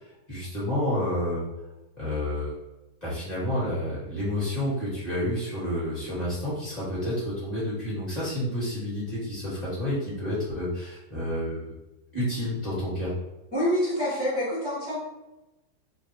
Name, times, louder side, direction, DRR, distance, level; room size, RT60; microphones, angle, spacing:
voice 1, 0.3-1.4 1.9-2.5 3.0-11.7 12.1-13.1, left 1 dB, 25° left, -10 dB, 1.5 m, -29 dB
voice 2, 13.5-15.0, equal, 5° right, -11 dB, 0.9 m, -26 dB
3.2 x 2.3 x 2.9 m, 1.0 s
omnidirectional pair, 1.8 m